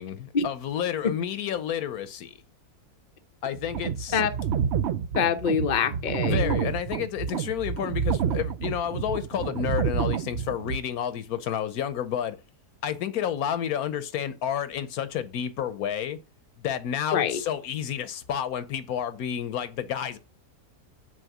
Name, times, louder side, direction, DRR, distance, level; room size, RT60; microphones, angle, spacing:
voice 1, 0.0-2.3 3.4-4.2 6.3-12.4 12.8-16.2 16.6-20.2, left 9 dB, 70° left, 1.1 m, -30 dB
sound 1, 3.5-10.8, right 7 dB, 90° right, 0.5 m, -28 dB
voice 2, 5.1-6.7 17.1-17.4, left 7 dB, 45° left, 0.6 m, -25 dB
6.4 x 4.7 x 6.0 m
omnidirectional pair, 1.7 m